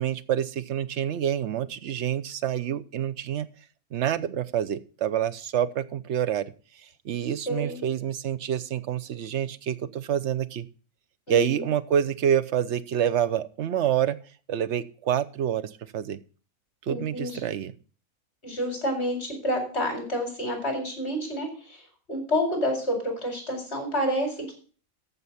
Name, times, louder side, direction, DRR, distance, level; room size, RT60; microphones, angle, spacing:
voice 1, 0.0-3.5 3.9-6.4 7.0-10.7 11.3-14.2 14.5-16.2 16.9-17.7, right 9 dB, 60° right, 14 dB, 0.9 m, -27 dB
voice 2, 7.5-7.8 11.3-11.6 16.9-17.4 18.4-21.8 22.1-24.5, equal, 50° left, 4 dB, 4.7 m, -29 dB
14.0 x 5.5 x 7.1 m, 0.39 s
omnidirectional pair, 1.4 m